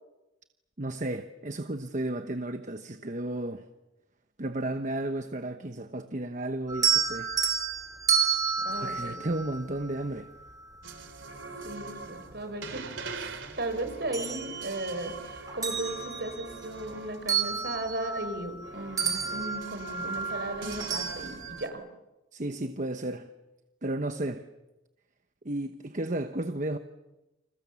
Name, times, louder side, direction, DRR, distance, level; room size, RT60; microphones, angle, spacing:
voice 1, 0.8-3.7 4.4-7.3 8.7-10.3 22.3-23.3 23.8-24.5 25.4-26.8, right 1 dB, 40° right, 1.1 m, -33 dB
sound 1, 6.7-10.0 11.7-11.8 12.3-13.5 13.9-15.1 15.5-18.7 19.0-21.6, right 6 dB, 20° right, 2.9 m, -31 dB
voice 2, 8.6-9.2 11.6-12.8 13.2-13.3 13.6-21.8, right 2 dB, 60° right, 4.4 m, -36 dB
sound 2, 10.8-18.1 18.6-21.7, right 3 dB, 85° right, 3.1 m, -43 dB
30.0 x 28.0 x 7.1 m
head